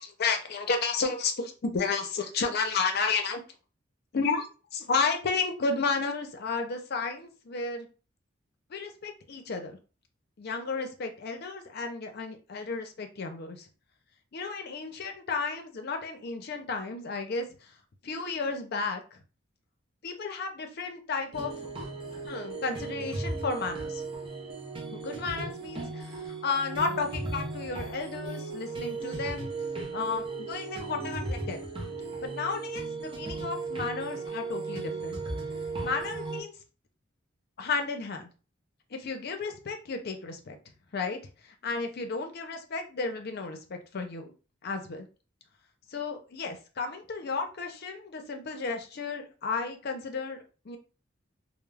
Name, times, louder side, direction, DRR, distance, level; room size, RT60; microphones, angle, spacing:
voice 1, 0.0-3.4 4.1-4.4 4.7-7.9 8.7-9.8 10.4-13.7 14.3-17.7 18.0-19.2 20.0-21.5 22.2-24.0 24.9-29.5 29.9-31.7 32.2-35.2 35.8-36.5 37.6-38.3 38.9-40.6 40.9-44.3 44.6-45.1 45.9-50.8, left 4 dB, 55° left, 6 dB, 0.5 m, -32 dB
sound 1, 21.3-36.4, right 3 dB, 25° right, 0.6 m, -36 dB
2.2 x 2.0 x 3.2 m, 0.34 s
head